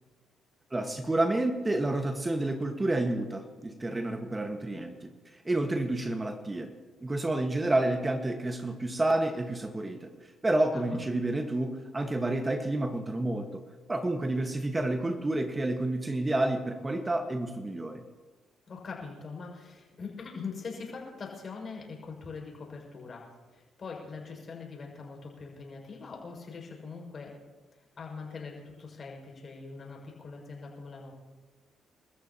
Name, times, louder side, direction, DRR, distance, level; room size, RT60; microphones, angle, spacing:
voice 1, 0.7-6.7 7.0-13.6 13.9-18.0, right 2 dB, 25° right, 6 dB, 1.5 m, -29 dB
voice 2, 10.7-11.0 18.7-27.4 28.0-31.1, left 4 dB, 50° left, 0 dB, 5.9 m, -42 dB
29.5 x 14.0 x 3.0 m, 1.3 s
hypercardioid pair, 50°, 0 cm